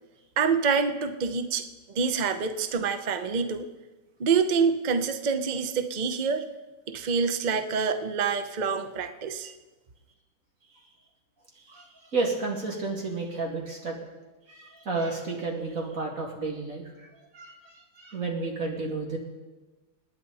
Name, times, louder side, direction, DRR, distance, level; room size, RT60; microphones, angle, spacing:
voice 1, 0.4-3.7 4.2-6.5 6.9-9.5, right 5 dB, 80° right, 8 dB, 0.4 m, -26 dB
voice 2, 11.6-14.0 14.5-17.1 17.3-19.2, right 3 dB, 45° right, 0 dB, 2.8 m, -32 dB
27.0 x 9.8 x 4.1 m, 1.2 s
omnidirectional pair, 2.0 m